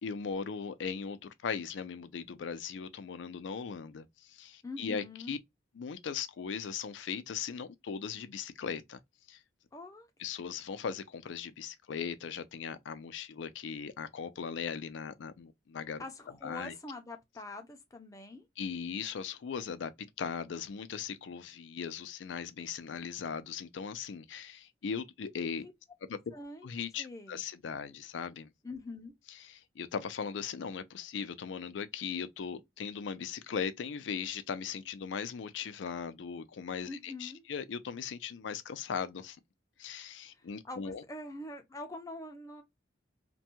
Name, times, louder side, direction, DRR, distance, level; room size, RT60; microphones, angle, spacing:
voice 1, 0.0-5.4 5.8-9.0 9.3-9.4 10.2-16.0 16.4-16.7 18.6-19.9 20.2-25.7 26.1-26.2 26.6-28.5 29.4-39.4 39.8-41.0, left 6 dB, 90° left, 0.4 m, -38 dB
voice 2, 4.6-5.4 9.7-10.1 16.0-18.5 25.6-25.7 26.3-26.7 27.0-27.4 28.6-29.1 36.9-37.4 40.3-42.6, left 2 dB, 20° left, 0.5 m, -44 dB
2.6 x 2.2 x 2.8 m
head